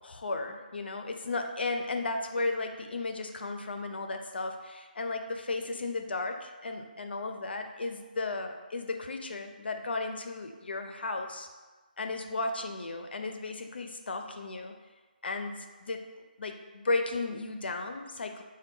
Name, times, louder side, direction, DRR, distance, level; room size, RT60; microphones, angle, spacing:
voice 1, 0.0-11.5 12.0-14.7 15.2-16.0 16.4-18.4, left 3 dB, 85° left, 5 dB, 0.4 m, -34 dB
3.7 x 2.2 x 3.7 m, 1.3 s
hypercardioid pair, 175°, 5 cm